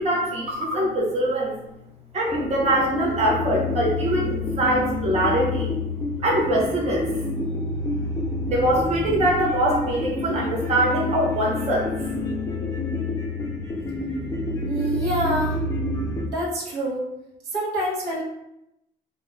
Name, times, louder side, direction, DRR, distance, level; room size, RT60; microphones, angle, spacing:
voice 1, 0.0-1.5 2.1-5.7 6.2-7.1 8.5-11.9, right 1 dB, 40° right, -3 dB, 0.8 m, -23 dB
sound 1, 2.3-16.2, left 2 dB, 20° left, 0.6 m, -28 dB
voice 2, 14.7-15.6 16.3-17.0 17.5-18.2, equal, 85° right, -4 dB, 0.8 m, -26 dB
2.2 x 2.2 x 3.0 m, 0.83 s
cardioid pair, 110°, 17 cm